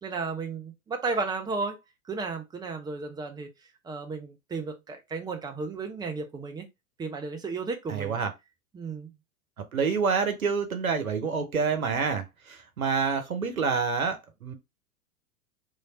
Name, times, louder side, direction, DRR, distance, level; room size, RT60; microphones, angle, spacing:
voice 1, 0.0-1.8 2.1-3.5 3.8-6.7 7.0-8.2 8.7-9.1, right 4 dB, 10° right, 0.6 m, -33 dB
voice 2, 7.9-8.3 9.7-14.5, right 5 dB, 80° right, 0.9 m, -27 dB
3.2 x 2.7 x 4.0 m
figure-of-eight pair, 95°, 41 cm